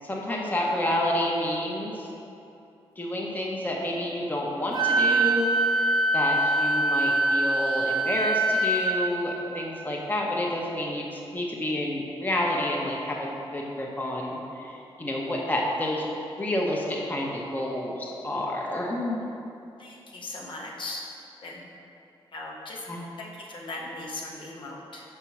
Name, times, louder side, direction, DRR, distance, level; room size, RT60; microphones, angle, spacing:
voice 1, 0.0-2.1 3.0-16.1 16.4-19.3 22.9-23.1, left 1 dB, 15° left, -3 dB, 0.8 m, -29 dB
Wind instrument woodwind instrument, 4.7-8.9, right 2 dB, 50° right, 0.8 m, -23 dB
voice 2, 19.8-21.0 21.4-21.6 22.3-22.8 23.2-25.0, left 2 dB, 55° left, -2 dB, 0.8 m, -38 dB
5.1 x 4.4 x 5.9 m, 2.8 s
wide cardioid pair, 120°, 10 cm